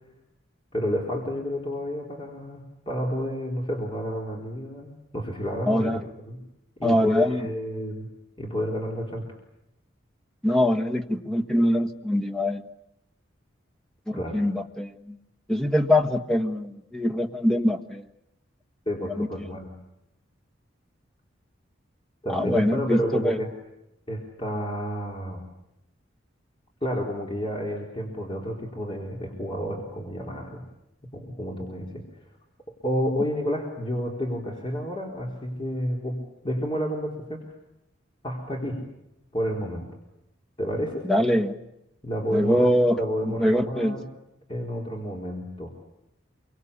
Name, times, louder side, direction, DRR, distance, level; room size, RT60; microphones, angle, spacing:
voice 1, 0.7-6.4 6.8-8.1 8.4-9.2 14.1-14.4 18.9-19.7 22.2-23.5 24.1-25.4 26.8-30.6 31.1-32.0 32.8-37.4 38.2-38.8 39.3-39.9 40.6-41.1 42.0-44.0 44.5-45.7, equal, 25° left, -1 dB, 4.0 m, -30 dB
voice 2, 5.7-6.0 6.8-7.4 10.4-12.7 14.1-15.2 15.5-18.1 19.2-19.3 22.3-23.4 41.1-41.5 42.3-43.0 43.3-44.0, left 1 dB, 5° left, 3 dB, 1.5 m, -23 dB
27.5 x 23.5 x 8.5 m, 0.87 s
head